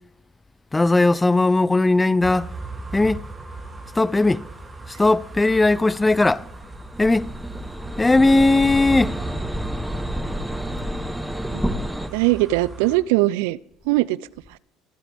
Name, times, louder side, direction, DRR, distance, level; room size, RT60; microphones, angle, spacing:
voice 1, 0.7-2.5 2.9-3.2 3.9-4.4 4.9-6.5 7.0-7.4 8.0-9.2, left 2 dB, 15° left, 0.5 m, -18 dB
sound 1, 2.2-13.0, right 2 dB, 20° right, 2.7 m, -37 dB
sound 2, 6.4-12.1, equal, ahead, 1.1 m, -30 dB
voice 2, 12.1-13.6 13.9-14.3, right 19 dB, 85° right, 0.4 m, -21 dB
24.5 x 8.9 x 3.5 m
supercardioid pair, 90°, 0 cm